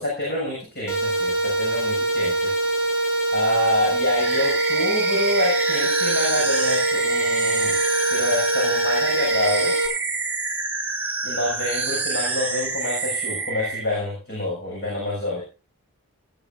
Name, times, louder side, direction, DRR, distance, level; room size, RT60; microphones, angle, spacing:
voice 1, 0.0-2.5 3.3-7.8 8.1-9.8 11.2-15.4, left 1 dB, 45° left, -2 dB, 6.7 m, -27 dB
sound 1, 0.9-9.9, right 2 dB, 15° left, 6.3 m, -23 dB
sound 2, 4.2-13.8, right 4 dB, 10° right, 1.1 m, -27 dB
18.0 x 13.5 x 2.6 m, 0.30 s
head